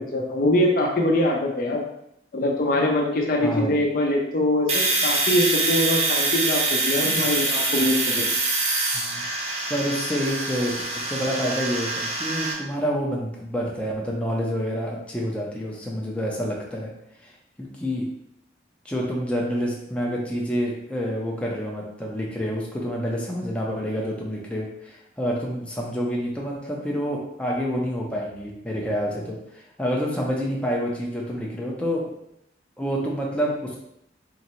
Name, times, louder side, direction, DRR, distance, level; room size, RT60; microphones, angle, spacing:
voice 1, 0.0-1.8 2.3-8.3, left 1 dB, 55° left, 0 dB, 0.6 m, -23 dB
voice 2, 3.4-3.9 8.9-9.2 9.7-16.9 17.2-17.3 17.6-18.1 18.8-32.0 32.8-33.8, equal, 5° left, -3 dB, 0.6 m, -28 dB
Domestic sounds home sounds, 4.7-12.5, right 2 dB, 35° right, 0.8 m, -25 dB
3.9 x 3.2 x 3.0 m, 0.78 s
head